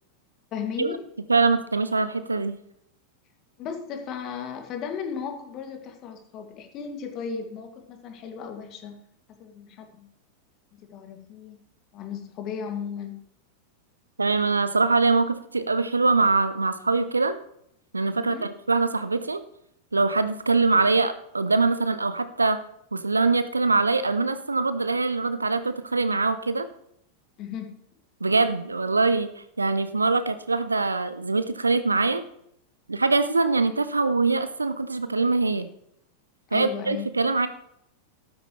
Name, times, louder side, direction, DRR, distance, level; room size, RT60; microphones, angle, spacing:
voice 1, 0.5-1.0 3.6-9.0 9.3-10.1 10.7-11.6 11.9-13.2 18.1-18.5 27.4-27.8 36.5-37.1, left 7 dB, 35° left, 5 dB, 2.5 m, -35 dB
voice 2, 1.3-2.6 14.2-17.3 17.9-19.4 19.9-22.6 22.9-26.7 28.2-29.3 29.6-32.2 32.9-35.7 36.5-37.5, right 3 dB, 80° right, 13 dB, 0.9 m, -23 dB
14.0 x 13.0 x 3.3 m, 0.73 s
figure-of-eight pair, 90°, 0 cm